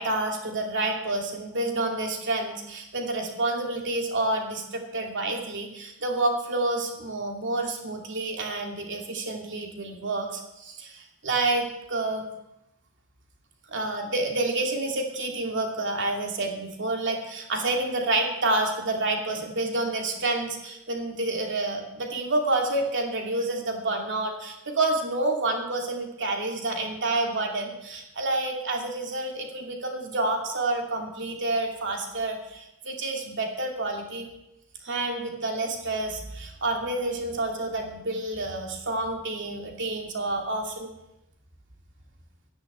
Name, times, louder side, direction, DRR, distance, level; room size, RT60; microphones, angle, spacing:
voice 1, 0.0-12.3 13.7-34.3 34.8-40.9, right 2 dB, 55° right, 2 dB, 2.6 m, -29 dB
10.5 x 10.5 x 8.0 m, 0.89 s
head